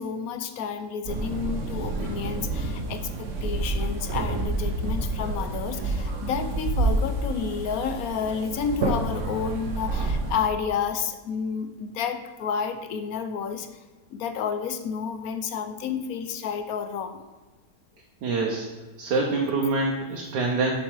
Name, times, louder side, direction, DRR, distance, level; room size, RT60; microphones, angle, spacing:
voice 1, 0.0-13.7 14.1-17.2, left 6 dB, 70° left, 9 dB, 1.0 m, -30 dB
sound 1, 1.0-10.5, right 2 dB, 50° right, 1.2 m, -29 dB
voice 2, 18.2-18.7 19.0-20.7, right 3 dB, 75° right, -1 dB, 1.5 m, -25 dB
7.4 x 5.7 x 4.7 m, 1.2 s
omnidirectional pair, 1.8 m